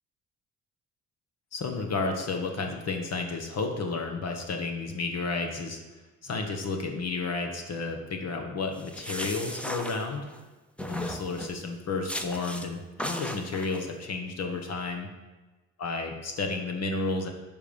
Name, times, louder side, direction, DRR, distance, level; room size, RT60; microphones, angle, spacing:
voice 1, 1.5-5.8 6.2-10.3 10.9-15.1 15.8-17.3, left 3 dB, 55° left, 3 dB, 1.2 m, -32 dB
sound 1, 8.7-10.4 10.8-11.6 12.1-12.7 13.0-13.8, equal, 5° left, 0.8 m, -36 dB
9.7 x 5.4 x 5.3 m, 1.2 s
cardioid pair, 90°, 30 cm